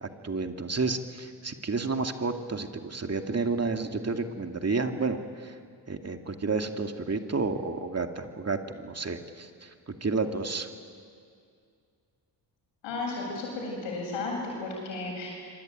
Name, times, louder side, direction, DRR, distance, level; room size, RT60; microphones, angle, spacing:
voice 1, 0.0-5.6 5.9-10.7, right 4 dB, 35° right, 5 dB, 2.4 m, -31 dB
voice 2, 12.8-15.3, left 3 dB, 90° left, -1 dB, 8.0 m, -34 dB
25.5 x 23.0 x 9.3 m, 2.3 s
supercardioid pair, 50°, 44 cm